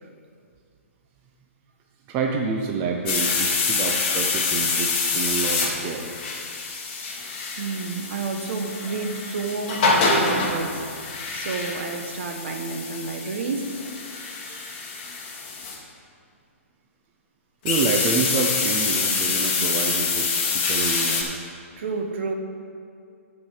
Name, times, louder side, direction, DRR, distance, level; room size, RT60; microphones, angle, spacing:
voice 1, 2.1-6.1 14.2-14.8 17.6-21.3, right 4 dB, 25° right, 1 dB, 0.7 m, -28 dB
sound 1, 3.1-15.8 17.7-21.2, left 4 dB, 40° left, 1.7 m, -26 dB
voice 2, 7.6-13.8 21.8-22.3, right 4 dB, 55° right, 4 dB, 1.2 m, -30 dB
9.2 x 5.1 x 7.4 m, 2.3 s
hypercardioid pair, 155°, 8 cm